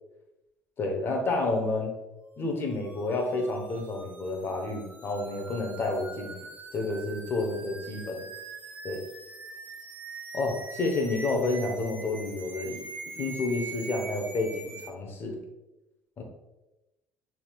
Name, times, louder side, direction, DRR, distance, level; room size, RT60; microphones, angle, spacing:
voice 1, 0.8-1.9 2.4-6.4 6.7-8.2 8.8-9.0 10.3-12.8 13.2-15.4 16.2-16.3, left 2 dB, 45° left, 3 dB, 1.1 m, -30 dB
sound 1, 2.6-14.9, right 3 dB, 25° right, 1.0 m, -43 dB
5.8 x 3.6 x 2.4 m, 0.98 s
hypercardioid pair, 65°, 6 cm